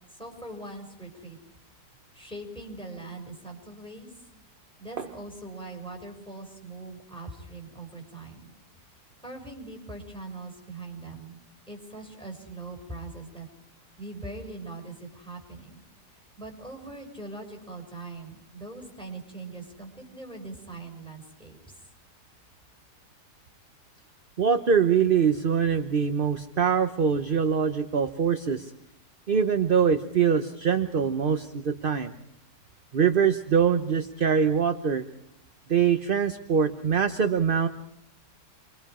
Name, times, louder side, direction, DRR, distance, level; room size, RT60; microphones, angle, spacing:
voice 1, 0.1-1.4 2.1-4.1 4.8-8.5 9.2-11.4 11.7-13.5 14.0-15.8 16.1-21.8, right 2 dB, 5° left, 1 dB, 6.0 m, -41 dB
voice 2, 24.4-28.7 29.3-32.1 32.9-35.0 35.7-37.7, right 7 dB, 40° right, 8 dB, 0.9 m, -23 dB
29.0 x 23.0 x 4.9 m, 0.77 s
omnidirectional pair, 1.8 m